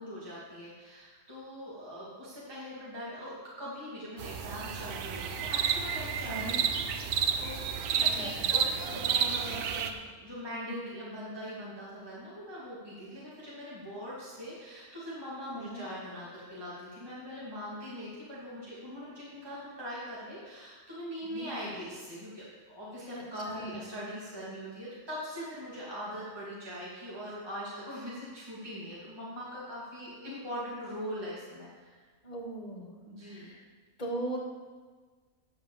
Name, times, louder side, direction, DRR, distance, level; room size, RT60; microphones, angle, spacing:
voice 1, 0.0-6.8 7.4-32.0 33.1-33.5, equal, 15° right, -8 dB, 2.4 m, -41 dB
sound 1, 4.2-9.9, right 7 dB, 85° right, 1.2 m, -31 dB
voice 2, 6.3-6.6 8.0-8.4 15.5-15.8 21.3-21.5 23.1-23.9 32.2-32.9 33.2-33.6 34.0-34.4, right 1 dB, 30° left, -3 dB, 2.3 m, -39 dB
9.5 x 5.5 x 7.3 m, 1.4 s
omnidirectional pair, 1.6 m